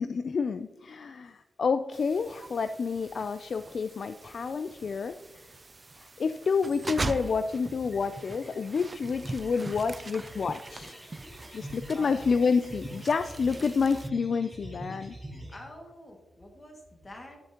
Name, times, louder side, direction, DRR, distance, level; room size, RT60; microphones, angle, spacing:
voice 1, 0.0-5.5 5.9-11.0 11.5-15.1, left 5 dB, 55° left, 11 dB, 0.3 m, -29 dB
sound 1, 1.9-14.1, right 3 dB, 25° right, 0.3 m, -42 dB
sound 2, 6.9-15.6, right 1 dB, 10° left, 3.0 m, -45 dB
voice 2, 11.6-12.4 13.4-13.6 15.5-17.4, left 1 dB, 30° left, 1 dB, 2.0 m, -47 dB
11.0 x 11.0 x 2.9 m, 1.2 s
wide cardioid pair, 120°, 0 cm